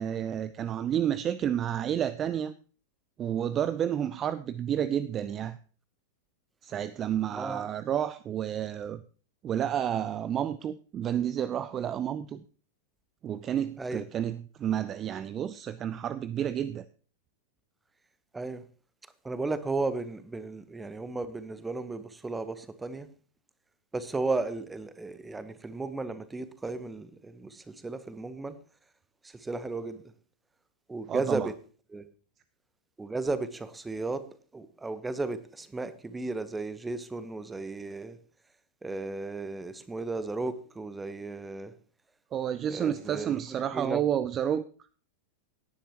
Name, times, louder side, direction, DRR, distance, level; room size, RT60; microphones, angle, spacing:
voice 1, 0.0-2.5 3.2-5.6 6.6-9.0 9.4-12.4 13.2-16.8 31.1-31.5 42.3-44.6, right 10 dB, 30° right, 0.5 m, -30 dB
voice 2, 19.2-23.1 23.9-28.6 29.2-30.0 30.9-31.5 31.9-32.1 33.0-34.2 34.5-38.2 38.8-41.7 42.7-43.4 43.7-44.0, right 3 dB, 10° right, 1.1 m, -34 dB
17.5 x 10.0 x 3.0 m
figure-of-eight pair, 90°, 0 cm